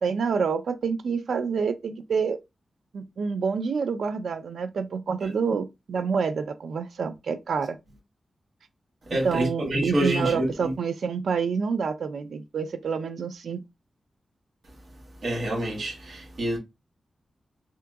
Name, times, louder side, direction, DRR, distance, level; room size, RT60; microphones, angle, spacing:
voice 1, 0.0-2.4 2.9-7.8 9.2-13.6, right 5 dB, 90° right, 0.4 m, -27 dB
voice 2, 9.1-10.7 15.2-16.6, right 1 dB, 60° right, 1.3 m, -27 dB
3.4 x 2.9 x 2.3 m
wide cardioid pair, 140°, 0 cm